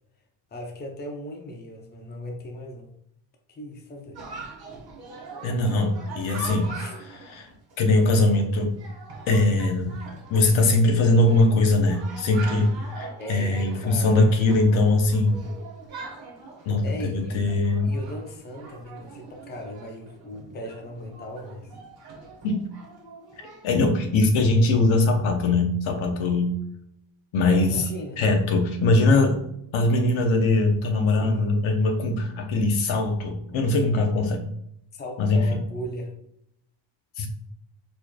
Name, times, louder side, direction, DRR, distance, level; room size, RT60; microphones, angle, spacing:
voice 1, 0.5-2.9 3.5-4.2 6.7-6.9 13.2-14.3 16.8-17.4 17.8-21.7 27.4-28.2 31.2-31.6 34.9-36.1, equal, 20° left, 1 dB, 0.6 m, -37 dB
Chatter, 4.1-23.7, right 3 dB, 50° right, 1.3 m, -42 dB
voice 2, 5.4-6.7 7.0-7.5 7.8-8.7 9.3-9.9 10.3-15.4 16.7-17.9 22.4-22.6 23.6-26.5 27.3-27.8 28.2-29.4 29.7-34.4 35.2-35.5 37.2-37.3, left 2 dB, 70° left, 4 dB, 0.8 m, -21 dB
4.2 x 3.1 x 2.2 m, 0.73 s
cardioid pair, 110°, 50 cm